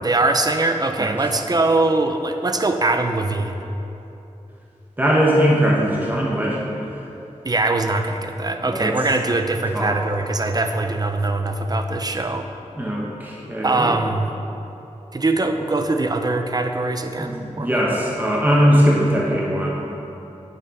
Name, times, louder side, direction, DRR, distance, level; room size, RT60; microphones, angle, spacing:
voice 1, 0.0-3.6 7.4-12.5 13.6-14.3 15.1-17.8, right 2 dB, 35° right, 6 dB, 0.6 m, -22 dB
voice 2, 5.0-6.9 8.6-8.9 9.7-9.9 12.7-14.0 17.2-19.9, equal, 15° right, -5 dB, 1.2 m, -20 dB
8.9 x 7.0 x 5.0 m, 3.0 s
wide cardioid pair, 90°, 12 cm